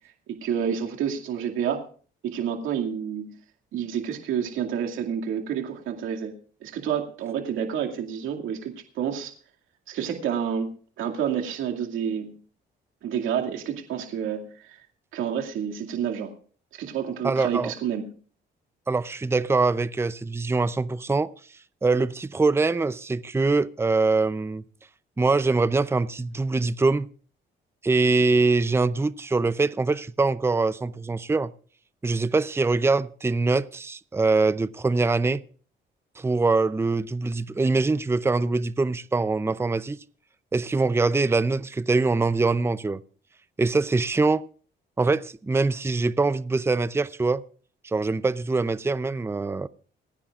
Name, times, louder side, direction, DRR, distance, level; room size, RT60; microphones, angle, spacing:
voice 1, 0.3-1.8 2.2-3.3 3.7-6.3 6.6-9.3 9.9-10.7 11.0-12.4 13.0-14.8 15.1-16.3 16.7-18.1, right 8 dB, 85° right, 2.3 m, -29 dB
voice 2, 17.2-17.7 18.9-21.3 21.8-24.6 25.2-27.1 27.8-31.5 32.0-35.4 36.2-40.0 40.5-43.0 43.6-44.5 45.0-47.4 47.8-49.7, right 3 dB, 10° right, 0.6 m, -23 dB
27.0 x 10.0 x 2.4 m
cardioid pair, 90°, 20 cm